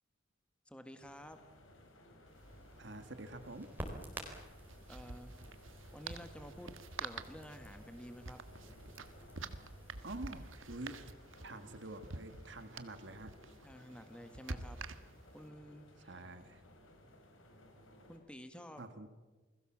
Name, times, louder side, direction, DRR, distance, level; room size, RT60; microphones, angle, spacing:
voice 1, 0.7-1.4 4.9-5.5 5.9-6.7 7.0-8.4 13.6-14.8 15.3-16.1 18.1-18.8, equal, 5° left, 7 dB, 1.5 m, -51 dB
sound 1, 1.0-18.2, left 1 dB, 85° left, 5.1 m, -60 dB
Crackle, 2.3-10.6, right 1 dB, 10° right, 4.1 m, -52 dB
sound 2, 2.3-2.4 2.6-2.7 4.2-15.4, right 3 dB, 85° right, 1.5 m, -48 dB
voice 2, 2.8-3.7 10.0-11.0 11.4-13.3 16.0-16.6 18.8-19.1, right 2 dB, 65° right, 9 dB, 1.7 m, -47 dB
29.0 x 21.0 x 7.4 m, 1.3 s
head